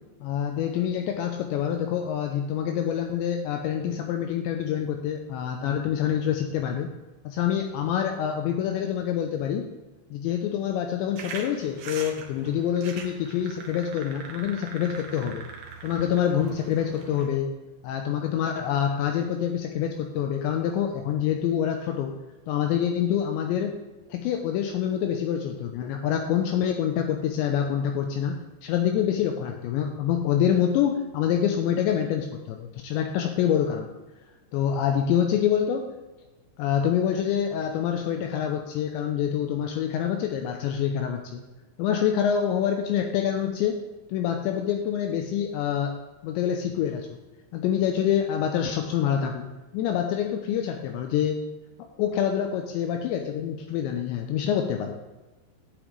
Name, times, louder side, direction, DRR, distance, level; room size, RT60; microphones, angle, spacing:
voice 1, 0.2-6.9 7.3-9.7 10.1-15.5 15.8-17.5 17.8-22.1 22.5-23.8 24.1-33.9 34.5-35.9 36.6-41.4 41.8-43.8 44.1-46.0 46.2-47.2 47.5-49.5 49.7-51.4 52.0-55.0, left 9 dB, 85° left, 4 dB, 2.7 m, -26 dB
sound 1, 11.2-17.3, right 5 dB, 75° right, 2.0 m, -42 dB
12.5 x 8.7 x 3.3 m, 1.1 s
omnidirectional pair, 5.7 m